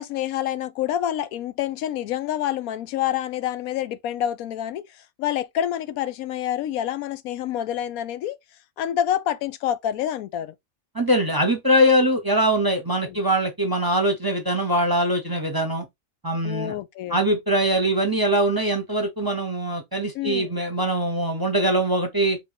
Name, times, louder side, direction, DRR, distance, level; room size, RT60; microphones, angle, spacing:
voice 1, 0.0-8.4 8.8-10.5 13.1-13.2 16.4-17.2 20.1-20.6, left 11 dB, 90° left, 1.1 m, -27 dB
voice 2, 10.9-15.9 16.2-16.7 17.1-22.4, right 1 dB, 20° right, 0.7 m, -22 dB
3.8 x 3.4 x 3.8 m
omnidirectional pair, 1.4 m